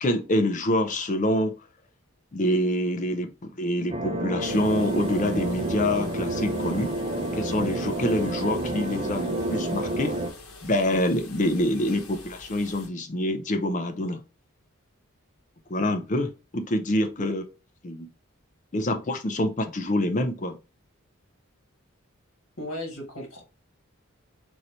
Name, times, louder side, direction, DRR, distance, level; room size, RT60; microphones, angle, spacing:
voice 1, 0.0-1.5 2.3-6.9 7.3-10.1 10.6-14.2 15.7-17.4 17.8-18.1 18.7-20.6, left 1 dB, 35° left, 6 dB, 0.5 m, -26 dB
sound 1, 3.9-10.3, right 2 dB, 25° right, 0.5 m, -29 dB
sound 2, 4.4-12.9, left 3 dB, 90° left, 0.9 m, -46 dB
voice 2, 22.6-23.4, left 1 dB, 65° left, 2 dB, 1.4 m, -35 dB
3.1 x 2.7 x 4.1 m, 0.31 s
head